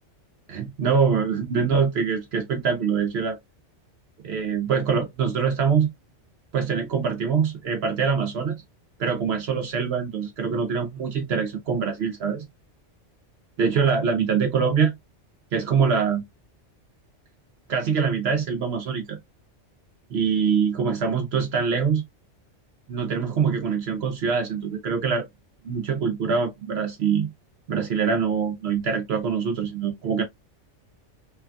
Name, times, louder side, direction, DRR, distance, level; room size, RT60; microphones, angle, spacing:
voice 1, 0.5-3.4 4.2-5.9 6.5-8.6 9.0-12.4 13.6-14.9 15.5-16.2 17.7-19.2 20.1-22.0 22.9-25.2 25.6-27.3 27.7-30.2, right 6 dB, 65° right, 0.8 m, -24 dB
3.2 x 2.2 x 2.4 m
omnidirectional pair, 1.2 m